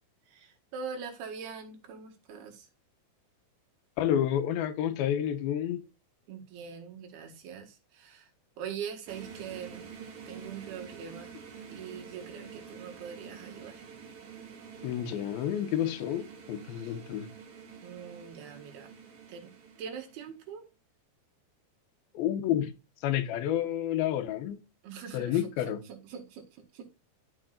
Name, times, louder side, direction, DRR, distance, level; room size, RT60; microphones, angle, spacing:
voice 1, 0.3-2.7 6.3-8.3 8.6-9.9 10.3-11.3 11.7-13.8 16.7-17.0 17.8-18.9 19.3-19.5 19.8-20.6 24.8-26.9, right 7 dB, 90° right, 3.7 m, -43 dB
voice 2, 4.0-5.8 14.8-17.3 22.1-22.7 23.0-24.6 25.1-25.8, left 11 dB, 85° left, 2.7 m, -29 dB
sound 1, 9.1-20.4, right 6 dB, 55° right, 3.1 m, -48 dB
13.0 x 5.5 x 2.5 m
omnidirectional pair, 4.3 m